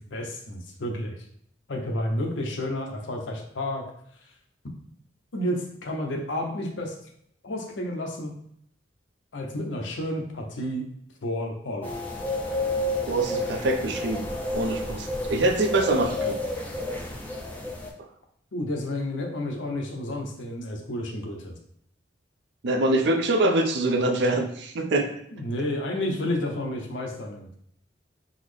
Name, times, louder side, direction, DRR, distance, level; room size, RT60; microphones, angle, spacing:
voice 1, 0.1-1.2 1.7-3.8 5.3-7.0 7.4-8.3 9.3-10.8 11.2-12.0 18.5-21.6 25.3-27.5, left 1 dB, 80° left, 1 dB, 0.7 m, -31 dB
sound 1, 11.8-17.9, left 2 dB, 10° left, 0.5 m, -30 dB
voice 2, 13.1-14.3 14.5-16.4 22.6-25.1, right 2 dB, 65° right, 6 dB, 0.4 m, -24 dB
3.8 x 2.0 x 3.2 m, 0.69 s
head